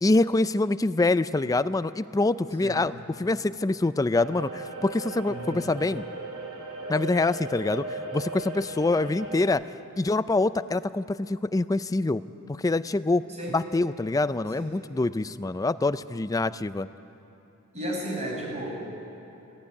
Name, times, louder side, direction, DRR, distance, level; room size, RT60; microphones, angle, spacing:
voice 1, 0.0-2.9 3.2-6.0 6.9-9.6 10.0-12.2 12.5-13.2 13.5-16.9, left 2 dB, 15° left, 15 dB, 0.4 m, -25 dB
voice 2, 2.6-2.9 5.3-5.6 13.3-13.6 14.5-14.7 17.7-18.9, equal, 30° right, -2 dB, 5.7 m, -34 dB
sound 1, 4.1-9.4, right 2 dB, 70° right, 2.4 m, -37 dB
18.5 x 15.5 x 9.7 m, 2.9 s
head